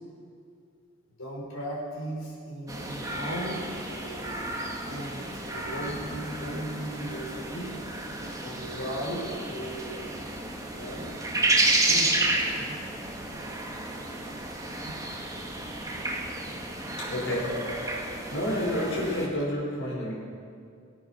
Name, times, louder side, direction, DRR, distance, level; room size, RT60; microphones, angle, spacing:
voice 1, 1.2-3.6 3.8-4.5 4.8-7.8 8.4-10.2 10.7-11.2 11.9-12.8 14.8-15.0, right 1 dB, 80° left, -3 dB, 5.0 m, -37 dB
sound 1, 2.7-19.3, right 2 dB, 15° right, 1.7 m, -31 dB
voice 2, 17.1-17.5 18.3-20.1, left 1 dB, 60° left, -3 dB, 5.1 m, -29 dB
24.0 x 8.4 x 6.4 m, 2.4 s
head